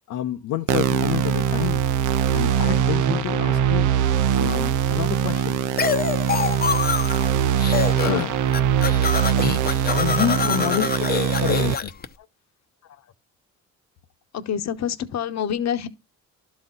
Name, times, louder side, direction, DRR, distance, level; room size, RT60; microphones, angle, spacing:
voice 1, 0.1-1.9 2.3-3.9 4.3-5.6 6.3-6.5 8.0-8.4 9.9-10.8 11.1-11.9, left 12 dB, 85° left, 0.8 m, -28 dB
sound 1, 0.7-11.7, right 10 dB, 80° right, 0.7 m, -22 dB
Bowed string instrument, 3.1-5.9, equal, 50° right, 1.2 m, -38 dB
sound 2, 5.8-7.3 7.6-8.2 8.5-12.0, left 5 dB, 30° left, 0.8 m, -25 dB
voice 2, 10.4-10.9 12.2-12.3 12.8-13.1 14.3-15.9, left 8 dB, 60° left, 1.0 m, -28 dB
12.0 x 4.3 x 3.9 m
cardioid pair, 90°, 30 cm